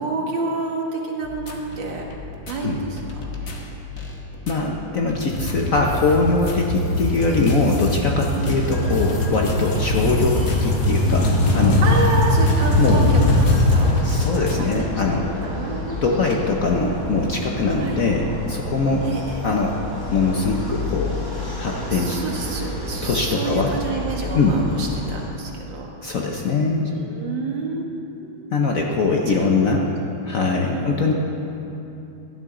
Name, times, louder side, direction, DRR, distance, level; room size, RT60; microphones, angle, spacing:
voice 1, 0.0-2.0 2.5-3.0 8.3-8.6 11.8-14.1 14.6-15.0 15.4-16.0 17.8-18.0 19.0-19.4 21.9-26.2 26.8-28.5 29.3-29.8 30.7-31.1, right 3 dB, 70° right, 0 dB, 2.2 m, -29 dB
sound 1, 1.2-14.8, left 2 dB, 40° left, 1.3 m, -36 dB
voice 2, 4.5-11.3 11.5-11.8 12.8-13.0 14.0-15.3 16.0-19.0 19.4-19.8 20.1-21.2 21.6-22.2 23.0-23.7 24.3-24.6 26.0-26.9 28.5-29.9 30.2-31.1, left 3 dB, 55° left, 0 dB, 1.0 m, -22 dB
sound 2, 5.1-14.0, left 1 dB, 75° left, 2.3 m, -21 dB
sound 3, 8.6-25.3, left 2 dB, 10° left, 1.4 m, -31 dB
15.5 x 12.5 x 3.8 m, 2.9 s
omnidirectional pair, 2.2 m